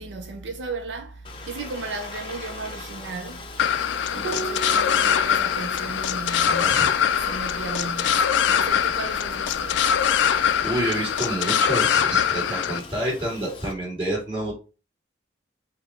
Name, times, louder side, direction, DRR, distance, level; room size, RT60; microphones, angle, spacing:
voice 1, 0.0-3.5 4.1-6.6 7.2-10.0, right 3 dB, 80° right, 0.6 m, -35 dB
Aircraft, 1.2-13.7, left 4 dB, 30° left, 0.6 m, -41 dB
sound 1, 3.6-12.8, left 8 dB, 80° left, 0.3 m, -23 dB
Piano, 4.2-9.1 10.7-11.5, right 5 dB, 50° right, 1.2 m, -41 dB
voice 2, 6.4-7.0 10.6-14.5, right 1 dB, 25° right, 2.5 m, -28 dB
4.9 x 2.2 x 4.3 m
head